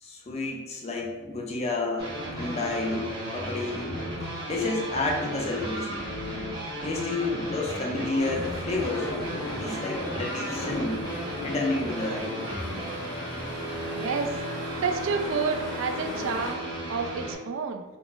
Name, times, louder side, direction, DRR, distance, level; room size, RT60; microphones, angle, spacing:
voice 1, 0.0-4.0 4.5-6.0 6.8-9.1 9.6-11.0 11.4-12.3 12.9-13.0, left 2 dB, 30° left, -1 dB, 0.4 m, -30 dB
sound 1, 2.0-17.4, equal, 25° right, 0.8 m, -35 dB
sound 2, 8.2-16.5, left 1 dB, 80° left, 0.8 m, -38 dB
voice 2, 13.9-14.4 14.8-17.8, right 5 dB, 70° right, 5 dB, 0.3 m, -29 dB
2.3 x 2.0 x 3.8 m, 1.2 s
head